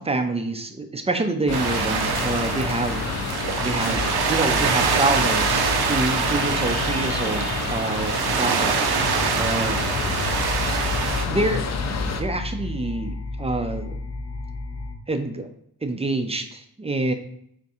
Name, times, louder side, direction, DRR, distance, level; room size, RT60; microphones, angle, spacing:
voice 1, 0.0-3.3 3.6-9.9 11.3-11.7 12.1-14.0 15.1-15.5 15.8-17.1, right 2 dB, 15° right, 6 dB, 0.3 m, -27 dB
sound 1, 1.5-12.2, left 5 dB, 45° left, 0.5 m, -29 dB
sound 2, 1.5-11.2, right 6 dB, 80° right, 0.6 m, -25 dB
sound 3, 3.7-15.0, left 2 dB, 20° left, 0.8 m, -33 dB
3.5 x 2.6 x 4.1 m, 0.70 s
cardioid pair, 105°, 38 cm